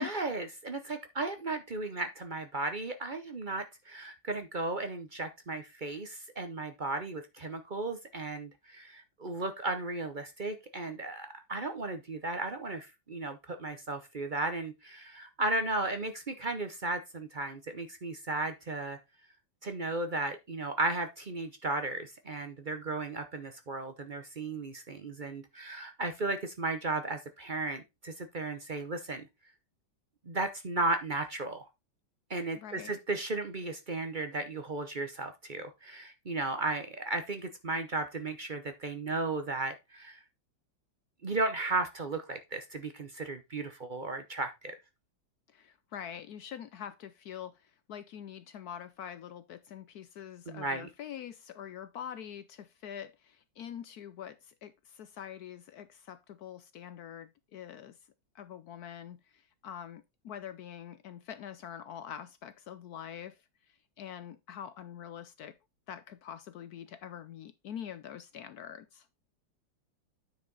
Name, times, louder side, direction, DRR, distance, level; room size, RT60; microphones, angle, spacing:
voice 1, 0.0-19.0 19.6-29.3 30.3-31.7 32.3-40.2 41.2-44.8 50.5-50.9, right 2 dB, 50° right, 0.6 m, -35 dB
voice 2, 32.6-32.9 45.5-58.0 58.3-65.6 65.9-69.1, left 9 dB, 70° left, 0.9 m, -45 dB
9.4 x 4.9 x 4.0 m
omnidirectional pair, 2.2 m